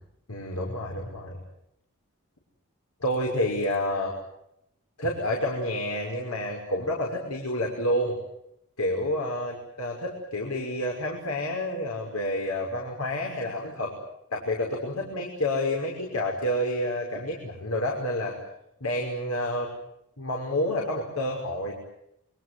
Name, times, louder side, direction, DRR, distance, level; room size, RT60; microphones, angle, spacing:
voice 1, 0.3-1.4 3.0-4.1 5.0-8.1 8.8-13.9 14.3-18.4 18.8-19.7 20.2-21.7, left 1 dB, 85° left, 0 dB, 6.0 m, -29 dB
28.5 x 25.0 x 7.9 m, 0.81 s
head